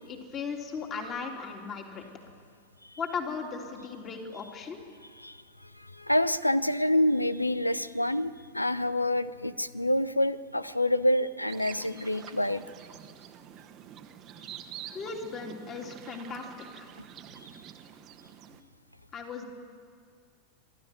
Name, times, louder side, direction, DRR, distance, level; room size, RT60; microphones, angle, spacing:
voice 1, 0.1-2.0 3.0-4.8 14.9-16.9 19.1-19.4, left 5 dB, 30° left, 2 dB, 3.2 m, -37 dB
voice 2, 5.1-12.6, left 1 dB, 85° left, 16 dB, 0.7 m, -27 dB
sound 1, 11.5-18.6, right 10 dB, 35° right, 1.2 m, -47 dB
27.0 x 12.5 x 9.2 m, 2.1 s
figure-of-eight pair, 90°, 0 cm